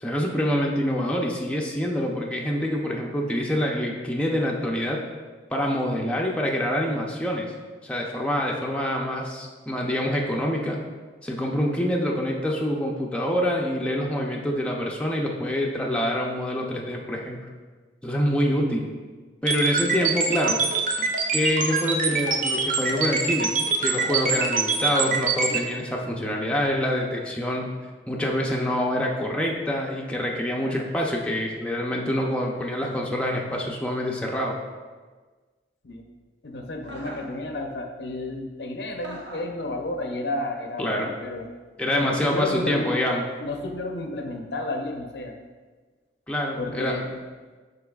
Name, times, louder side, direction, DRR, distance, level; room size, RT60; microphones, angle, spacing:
voice 1, 0.0-5.0 5.5-7.5 7.8-10.8 11.2-17.4 18.0-18.9 19.4-20.6 21.3-23.5 23.8-27.7 28.1-34.6 40.8-41.1 41.8-43.2 46.3-47.0, equal, 5° left, -2 dB, 0.5 m, -26 dB
sound 1, 19.5-25.6, right 4 dB, 45° right, 0.7 m, -24 dB
voice 2, 36.4-41.5 41.9-43.1 43.4-45.3 46.6-47.1, left 2 dB, 70° left, 4 dB, 0.6 m, -31 dB
Chuckle chortle, 36.8-37.3 39.0-39.6 41.9-42.3, right 1 dB, 80° right, 1.0 m, -40 dB
10.5 x 4.0 x 2.4 m, 1.4 s
head